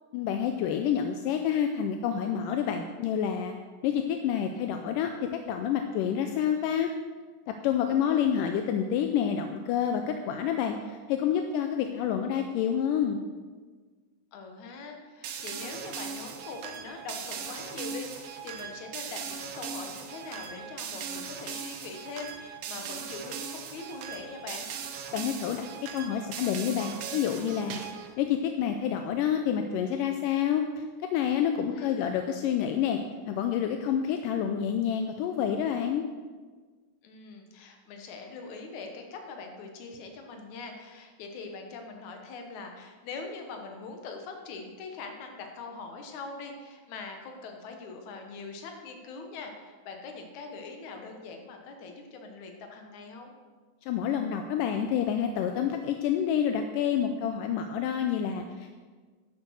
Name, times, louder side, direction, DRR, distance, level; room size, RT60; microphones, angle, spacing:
voice 1, 0.1-3.5 3.8-5.1 5.5-6.9 7.6-13.2 25.1-25.6 25.9-33.0 33.3-36.0 53.8-58.8, left 8 dB, 80° left, 6 dB, 2.2 m, -28 dB
voice 2, 7.9-8.3 14.3-24.7 31.7-32.2 37.0-53.3, left 4 dB, 65° left, 3 dB, 2.5 m, -42 dB
sound 1, 15.2-28.1, right 7 dB, 80° right, 1.4 m, -39 dB
10.5 x 8.2 x 6.4 m, 1.4 s
omnidirectional pair, 3.9 m